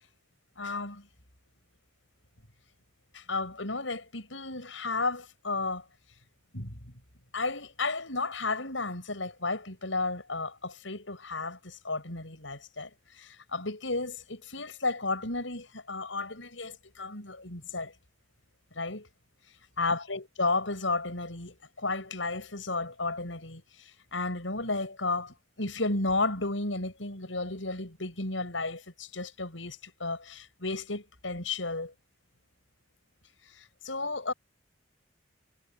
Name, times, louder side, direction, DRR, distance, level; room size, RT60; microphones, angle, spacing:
voice 1, 0.6-1.1 3.1-5.8 6.5-6.8 7.3-12.9 13.2-17.9 18.8-19.1 19.8-23.6 24.1-31.9 33.8-34.3, left 3 dB, 85° left, 7.2 m, -33 dB
head